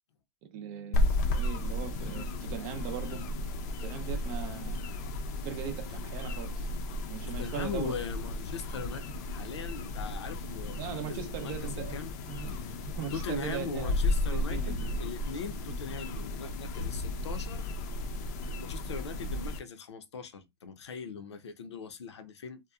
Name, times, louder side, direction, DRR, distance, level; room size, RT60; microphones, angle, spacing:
voice 1, 0.4-3.2 3.8-4.8 5.4-6.7 7.1-8.0 10.8-12.0 12.3-12.5 12.9-14.0 14.3-15.0 15.7-15.8, right 9 dB, 35° right, 0.5 m, -39 dB
sound 1, 0.9-19.6, left 2 dB, 40° left, 0.5 m, -34 dB
voice 2, 7.4-11.5 11.9-12.1 12.5-12.8 13.1-17.7 18.5-22.6, left 5 dB, 85° left, 0.6 m, -40 dB
2.8 x 2.2 x 2.3 m
hypercardioid pair, 145°, 14 cm